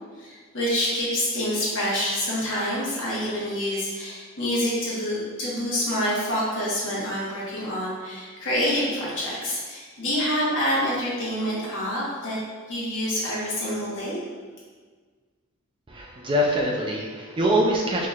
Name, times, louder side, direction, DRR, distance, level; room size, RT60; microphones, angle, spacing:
voice 1, 0.1-12.4 12.7-14.2, equal, 60° left, -7 dB, 1.2 m, -27 dB
voice 2, 15.9-18.1, equal, 25° right, -1 dB, 0.3 m, -24 dB
4.5 x 2.9 x 2.4 m, 1.5 s
head